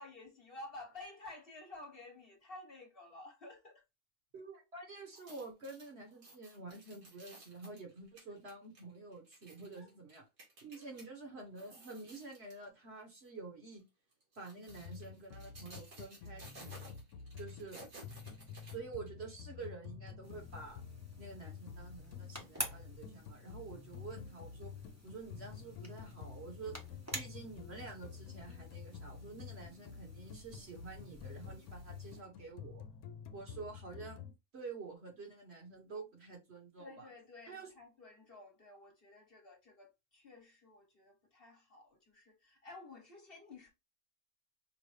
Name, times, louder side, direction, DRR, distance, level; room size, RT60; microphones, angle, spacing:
voice 1, 0.0-3.8 9.8-9.9 10.7-11.0 36.8-43.7, left 2 dB, 45° left, 1.3 m, -53 dB
voice 2, 4.3-10.2 10.6-13.9 14.4-16.9 17.4-17.8 18.7-20.8 21.2-24.7 25.0-26.8 27.1-32.8 33.3-37.1 37.5-37.7, right 3 dB, 50° right, 1.4 m, -49 dB
sound 1, 5.0-11.1 11.5-12.6 13.1-13.3 14.1-19.2 19.6-19.7, right 2 dB, 75° right, 2.3 m, -56 dB
sound 2, 14.7-34.3, left 7 dB, 85° left, 1.1 m, -50 dB
sound 3, 20.2-32.2, equal, 15° right, 0.8 m, -50 dB
5.3 x 2.5 x 3.2 m
omnidirectional pair, 1.5 m